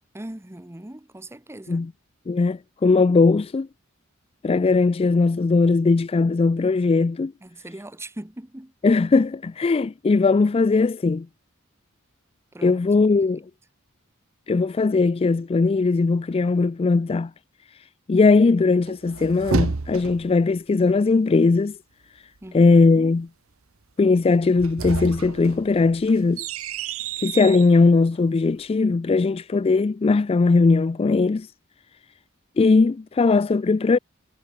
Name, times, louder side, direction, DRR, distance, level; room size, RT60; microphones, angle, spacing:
voice 1, 0.1-1.8 7.4-8.7 12.5-12.8 13.1-13.2 22.4-23.2, right 1 dB, 15° right, 1.1 m, -40 dB
voice 2, 2.3-3.7 4.4-7.3 8.8-11.3 12.6-13.4 14.5-17.3 18.1-21.8 22.5-23.3 24.0-26.4 27.2-31.5 32.6-34.0, left 3 dB, 30° left, 0.3 m, -19 dB
sound 1, 18.9-20.4 24.4-27.7, right 4 dB, 85° right, 0.9 m, -30 dB
head